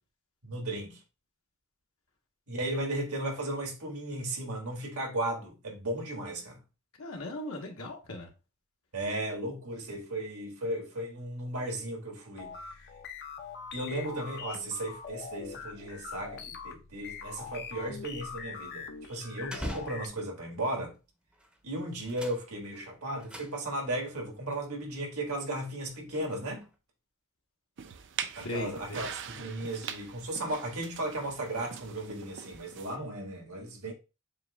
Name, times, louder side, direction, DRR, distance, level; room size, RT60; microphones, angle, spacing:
voice 1, 0.4-1.0 2.5-6.6 8.9-12.5 13.7-20.9 21.6-26.7 28.3-33.9, right 1 dB, 85° right, 1.6 m, -35 dB
voice 2, 7.0-8.3 28.4-29.1, left 1 dB, 70° left, 1.1 m, -38 dB
sound 1, 12.4-20.1, left 6 dB, 50° left, 0.6 m, -43 dB
sound 2, 17.9-20.6 21.3-21.6 21.9-24.0 24.5-24.6 25.3-26.8, equal, 5° right, 0.7 m, -45 dB
sound 3, 27.8-33.0, right 8 dB, 55° right, 0.4 m, -42 dB
7.3 x 2.6 x 2.2 m
head